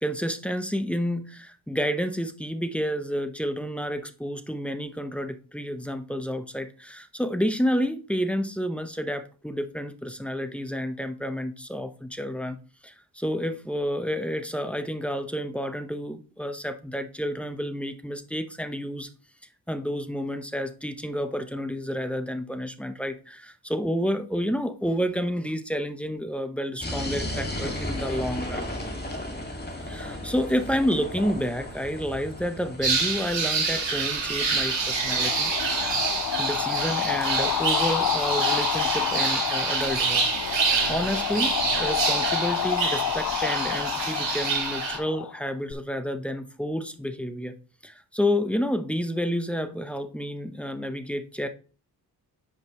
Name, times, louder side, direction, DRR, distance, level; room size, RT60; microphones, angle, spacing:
voice 1, 0.0-12.6 12.8-19.1 19.7-28.7 29.9-35.5 36.4-40.6 40.9-47.6 47.8-51.5, equal, 5° left, 8 dB, 1.0 m, -30 dB
sound 1, 26.8-37.5, left 1 dB, 25° left, 2.1 m, -36 dB
sound 2, 32.8-45.0, right 5 dB, 75° right, 2.3 m, -27 dB
sound 3, 34.6-45.7, left 10 dB, 50° left, 0.5 m, -29 dB
9.4 x 5.4 x 3.1 m, 0.37 s
cardioid pair, 50°, 43 cm